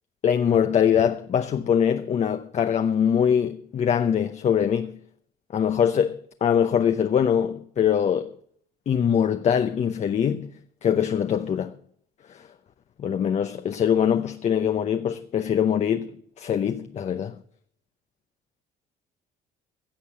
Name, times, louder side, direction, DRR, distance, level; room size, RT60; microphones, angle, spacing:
voice 1, 0.2-5.0 5.5-8.3 8.9-10.5 10.8-11.8 12.3-12.5 13.0-17.4, left 8 dB, 40° left, 0.8 m, -23 dB
16.5 x 6.8 x 8.7 m
cardioid pair, 110°, 17 cm